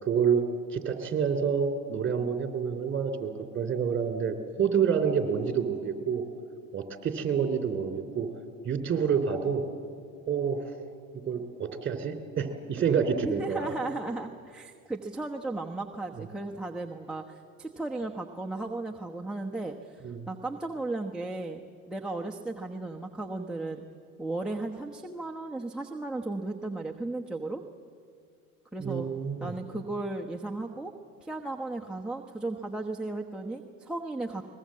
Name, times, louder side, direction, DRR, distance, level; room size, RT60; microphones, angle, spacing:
voice 1, 0.0-0.4 0.7-6.2 6.7-8.3 8.6-9.6 10.3-10.6 11.2-13.7 16.2-16.3 20.0-20.3 28.8-29.5, right 7 dB, 25° right, 7 dB, 3.2 m, -28 dB
voice 2, 13.2-21.6 21.9-23.8 24.2-27.6 28.7-29.1 29.4-30.9 31.2-34.4, right 2 dB, ahead, -1 dB, 1.1 m, -35 dB
22.5 x 20.5 x 7.6 m, 2.2 s
hypercardioid pair, 85°, 43 cm